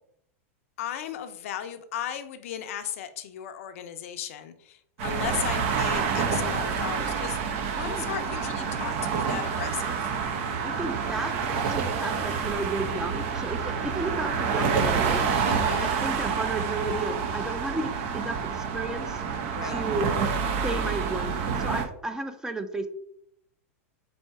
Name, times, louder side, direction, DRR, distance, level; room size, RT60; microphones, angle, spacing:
voice 1, 0.8-7.4 7.7-10.1 15.4-15.9 19.5-19.8, left 10 dB, 70° left, 9 dB, 0.5 m, -35 dB
sound 1, 5.0-21.8, right 6 dB, 60° right, 0.8 m, -28 dB
voice 2, 10.6-15.2 15.8-19.2 19.6-20.1 20.6-22.9, right 2 dB, 10° right, 7 dB, 0.5 m, -33 dB
4.2 x 2.8 x 4.6 m, 0.69 s
hypercardioid pair, 115°, 8 cm